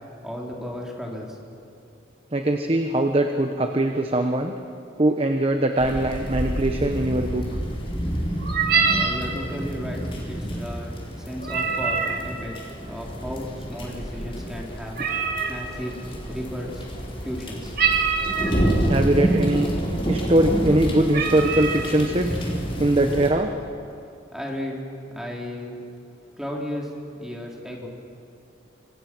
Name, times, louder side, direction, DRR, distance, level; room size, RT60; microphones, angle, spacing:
voice 1, 0.2-1.4 8.9-15.0 15.5-16.8 17.2-17.7 24.3-24.8 25.1-25.8 26.4-26.9 27.2-27.9, equal, 5° right, -2 dB, 3.6 m, -34 dB
voice 2, 2.3-4.5 5.0-7.4 18.9-19.7 20.0-22.3 22.8-23.5, right 1 dB, 30° right, 4 dB, 1.1 m, -21 dB
sound 1, 5.8-23.3, right 1 dB, 30° left, 4.3 m, -28 dB
sound 2, 8.4-9.2 11.4-12.2 15.0-15.6 17.8-18.6 19.4-19.5 19.9-20.1 20.7-20.8 21.1-21.9, right 6 dB, 55° right, 2.5 m, -24 dB
26.5 x 26.0 x 6.2 m, 2.5 s
head